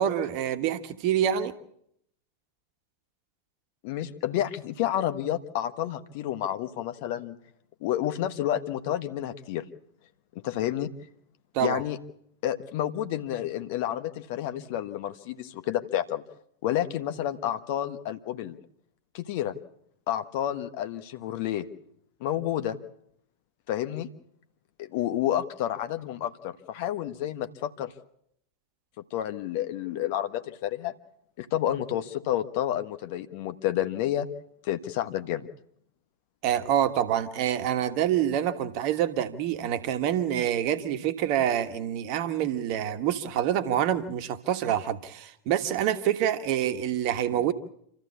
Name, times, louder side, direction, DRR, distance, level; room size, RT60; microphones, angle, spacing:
voice 1, 0.0-1.5 11.5-11.8 36.4-47.5, right 10 dB, 45° right, 1.4 m, -26 dB
voice 2, 3.8-7.4 7.8-9.6 10.3-10.9 11.6-12.0 12.4-16.2 16.6-18.6 19.1-19.5 20.1-21.6 22.2-22.8 23.7-24.1 24.8-27.9 29.1-30.9 31.4-34.3 34.6-35.5 47.3-47.4, left 12 dB, 50° left, 1.3 m, -30 dB
27.0 x 14.5 x 8.5 m
figure-of-eight pair, 90°, 0 cm